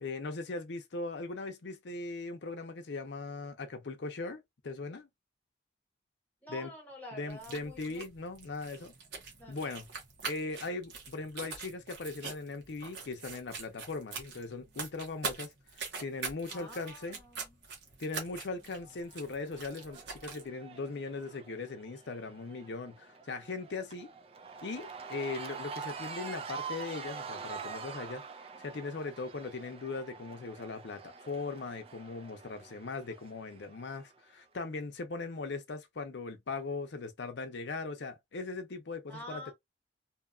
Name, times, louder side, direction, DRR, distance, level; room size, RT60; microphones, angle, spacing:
voice 1, 0.0-5.1 6.5-6.7 7.1-8.9 9.5-9.9 10.2-15.5 15.8-17.2 18.0-24.1 24.6-28.2 28.6-39.5, left 3 dB, 75° left, 0.6 m, -39 dB
voice 2, 6.4-8.0 9.4-9.7 16.5-17.7 39.1-39.5, equal, 10° left, 1.1 m, -48 dB
sound 1, 7.3-20.5, right 4 dB, 70° right, 0.9 m, -44 dB
Cheering / Crowd, 18.8-34.1, right 5 dB, 30° right, 0.3 m, -46 dB
2.7 x 2.3 x 2.4 m
head